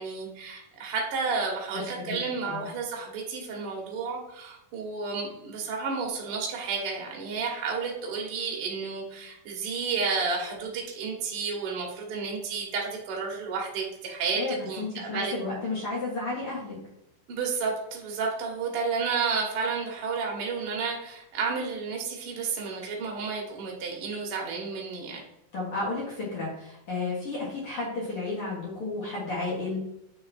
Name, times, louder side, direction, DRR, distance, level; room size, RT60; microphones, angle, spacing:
voice 1, 0.0-15.3 17.3-25.2, right 5 dB, 85° right, -1 dB, 1.2 m, -31 dB
voice 2, 14.4-16.8 25.5-29.8, left 3 dB, 60° left, -5 dB, 1.4 m, -32 dB
8.6 x 3.5 x 4.2 m, 0.83 s
omnidirectional pair, 4.8 m